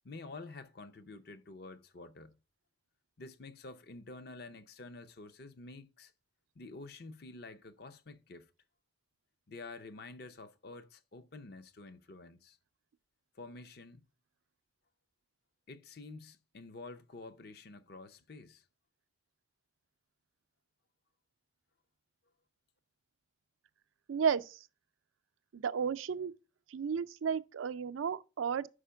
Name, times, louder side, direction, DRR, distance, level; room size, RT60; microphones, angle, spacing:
voice 1, 0.0-2.4 3.2-6.1 6.6-8.5 9.5-12.6 13.3-14.0 15.7-18.6, left 3 dB, 55° left, 0.6 m, -49 dB
voice 2, 24.1-24.6 25.5-26.3 26.7-28.7, right 7 dB, 90° right, 0.4 m, -33 dB
5.0 x 4.9 x 5.5 m
head